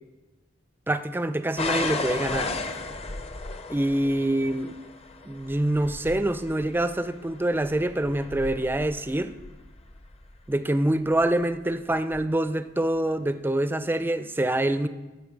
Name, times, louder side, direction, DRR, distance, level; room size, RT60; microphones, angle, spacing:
voice 1, 0.9-2.5 3.7-4.8 5.3-9.3 10.5-14.9, right 1 dB, 10° right, 12 dB, 0.4 m, -25 dB
sound 1, 1.6-10.4 11.1-11.5 12.1-12.2, left 3 dB, 30° left, 0.6 m, -35 dB
15.0 x 6.5 x 5.1 m, 1.2 s
head